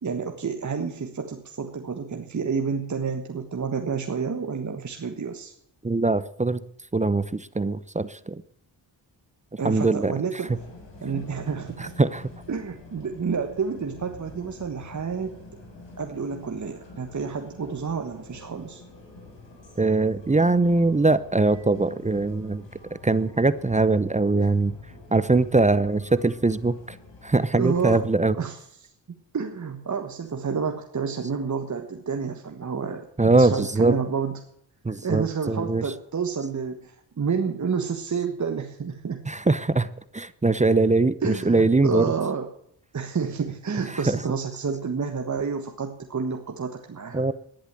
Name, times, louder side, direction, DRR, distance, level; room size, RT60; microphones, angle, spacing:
voice 1, 0.0-5.5 9.6-10.6 11.0-11.9 12.5-15.4 16.0-18.8 27.5-28.1 28.3-34.4 35.0-39.2 41.2-42.5 42.9-47.2, right 5 dB, 40° right, 5 dB, 1.4 m, -29 dB
voice 2, 5.8-6.6 6.9-8.4 9.6-10.6 11.8-12.3 19.8-22.6 23.0-24.8 25.1-26.7 27.2-28.4 33.2-33.9 34.8-36.0 39.3-39.9 40.1-42.1 43.9-44.3 47.1-47.3, right 3 dB, 15° right, 16 dB, 0.7 m, -22 dB
sound 1, 10.5-28.1, left 2 dB, 80° left, 6.4 m, -47 dB
11.5 x 10.0 x 7.5 m, 0.68 s
cardioid pair, 60°, 44 cm